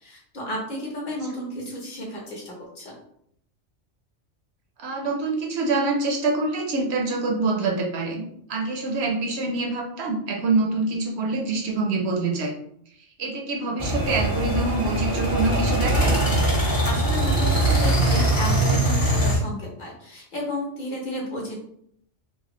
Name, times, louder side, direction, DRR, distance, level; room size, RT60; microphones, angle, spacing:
voice 1, 0.0-3.0 16.6-21.5, left 1 dB, 50° left, -2 dB, 0.9 m, -33 dB
voice 2, 4.8-8.2 8.5-12.5 13.2-16.2, right 3 dB, 70° right, 1 dB, 0.8 m, -25 dB
sound 1, 13.8-19.4, right 1 dB, 20° left, 0.6 m, -21 dB
3.1 x 2.4 x 2.9 m, 0.70 s
omnidirectional pair, 1.2 m